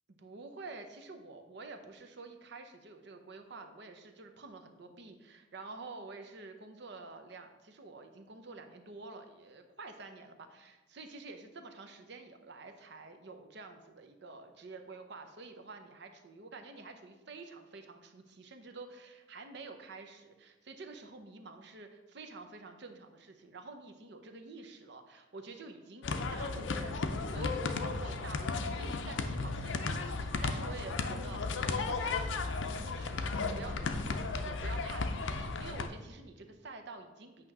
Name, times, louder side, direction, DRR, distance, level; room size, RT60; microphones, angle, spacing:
voice 1, 0.1-37.5, right 3 dB, 60° right, 6 dB, 0.7 m, -49 dB
sound 1, 26.0-35.9, left 3 dB, 75° left, 0.6 m, -34 dB
8.6 x 2.9 x 6.0 m, 1.1 s
head